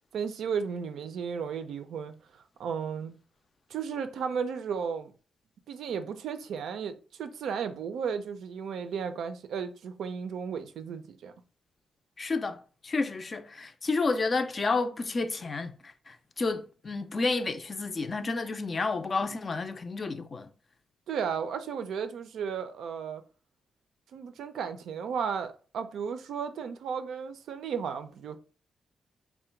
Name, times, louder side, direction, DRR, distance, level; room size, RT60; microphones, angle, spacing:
voice 1, 0.1-3.2 3.7-5.1 5.7-11.3 21.1-23.2 24.1-28.4, right 6 dB, 80° right, 0.5 m, -34 dB
voice 2, 12.2-20.5, left 3 dB, 35° left, 0.4 m, -31 dB
3.7 x 2.1 x 4.4 m
cardioid pair, 125°, 0 cm